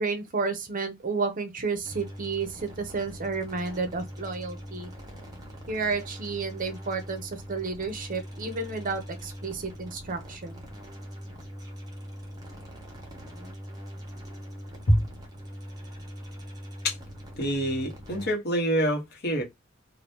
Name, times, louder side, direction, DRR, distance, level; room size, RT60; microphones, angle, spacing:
voice 1, 0.0-4.9 5.7-10.7, right 4 dB, 45° right, 0.7 m, -31 dB
sound 1, 1.8-18.3, equal, 20° right, 1.1 m, -42 dB
voice 2, 17.4-19.4, equal, 55° left, 1.2 m, -25 dB
2.8 x 2.5 x 3.4 m
head